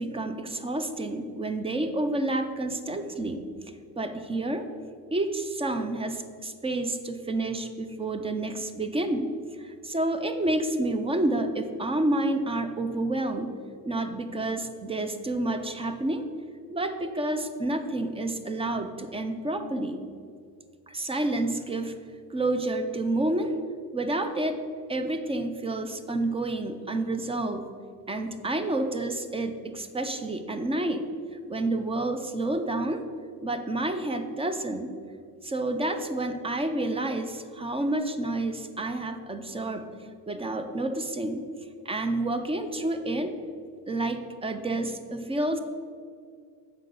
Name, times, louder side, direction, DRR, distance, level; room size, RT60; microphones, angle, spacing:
voice 1, 0.0-3.4 4.0-4.7 5.1-13.5 13.8-16.2 16.7-20.0 20.9-22.0 22.3-23.6 23.9-24.6 24.9-27.7 28.1-31.1 31.5-33.1 33.4-34.9 35.4-39.8 40.3-41.4 41.9-43.4 43.9-45.6, right 2 dB, 15° right, 8 dB, 0.4 m, -29 dB
7.7 x 4.6 x 6.7 m, 2.2 s
cardioid pair, 125°, 42 cm